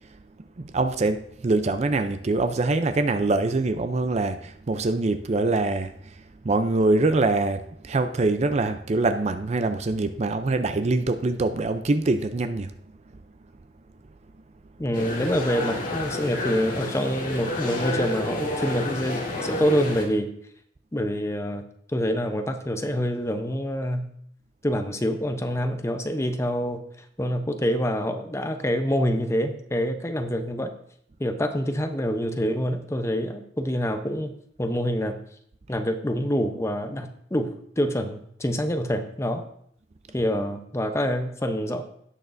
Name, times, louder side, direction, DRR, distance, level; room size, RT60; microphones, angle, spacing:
voice 1, 0.6-5.9 6.4-12.7, right 2 dB, 35° right, 0.5 m, -24 dB
voice 2, 14.8-20.3 20.9-21.6 21.9-24.1 24.6-26.8 27.2-30.7 31.2-34.3 34.6-35.2 35.7-37.5 37.8-39.4 40.1-41.8, equal, 15° left, 0.7 m, -26 dB
sound 1, 14.9-20.1, left 2 dB, 50° left, 2.2 m, -30 dB
17.0 x 6.4 x 2.6 m
head